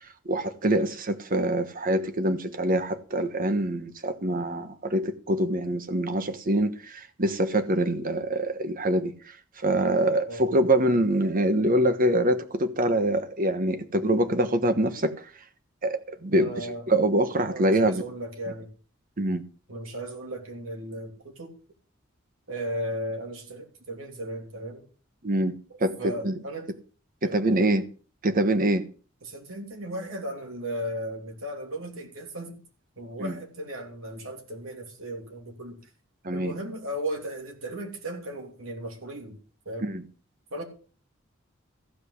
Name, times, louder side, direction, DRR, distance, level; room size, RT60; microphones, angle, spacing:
voice 1, 0.2-15.1 15.8-18.0 19.2-19.4 25.2-25.9 26.2-26.3 27.2-27.8 28.2-28.9 33.2-33.3 36.2-36.5 39.8-40.0, right 1 dB, 40° right, 1.3 m, -25 dB
voice 2, 16.3-16.9 17.5-18.7 19.7-21.5 22.5-24.9 25.7-26.7 27.2-27.7 29.2-32.6 33.0-35.8 36.3-39.4 39.6-39.9 40.5-40.6, right 1 dB, 75° right, 3.0 m, -36 dB
15.0 x 5.5 x 8.1 m
head